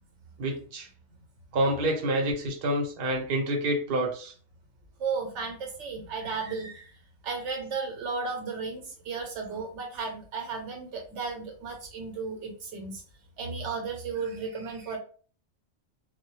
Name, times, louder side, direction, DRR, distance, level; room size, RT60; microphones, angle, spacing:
voice 1, 0.4-0.9 1.5-4.3, right 1 dB, 55° right, 1 dB, 0.8 m, -28 dB
voice 2, 5.0-6.9 7.2-13.0 13.4-15.0, right 4 dB, 75° right, 2 dB, 1.0 m, -34 dB
2.2 x 2.1 x 3.0 m, 0.41 s
omnidirectional pair, 1.2 m